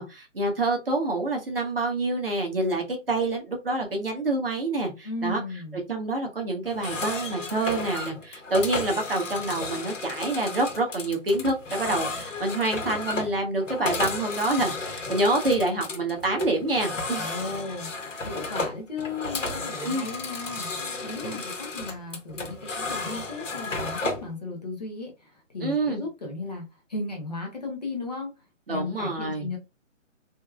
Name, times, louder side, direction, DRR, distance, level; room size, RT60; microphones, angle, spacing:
voice 1, 0.0-5.4 5.9-17.3 19.8-20.1 21.2-21.4 25.6-26.0 28.7-29.5, right 2 dB, 45° right, 1.0 m, -27 dB
voice 2, 5.0-5.8 17.2-28.3 28.7-29.6, left 3 dB, 30° left, 0.9 m, -36 dB
sound 1, 6.7-24.3, left 3 dB, 75° left, 1.3 m, -33 dB
3.4 x 3.0 x 2.3 m
hypercardioid pair, 175°, 38 cm